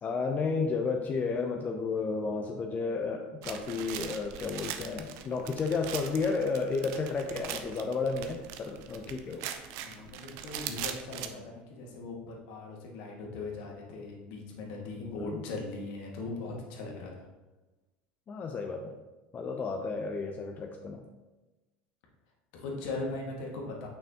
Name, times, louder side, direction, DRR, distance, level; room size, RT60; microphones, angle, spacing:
voice 1, 0.0-9.5 15.0-15.4 18.3-18.9 19.3-21.0, left 4 dB, 35° left, 2 dB, 0.6 m, -32 dB
sound 1, 3.4-11.3, right 9 dB, 65° right, 0.6 m, -41 dB
voice 2, 9.8-17.3 22.5-23.9, left 3 dB, 70° left, -1 dB, 1.7 m, -39 dB
6.7 x 5.7 x 2.9 m, 1.1 s
hypercardioid pair, 90°, 5 cm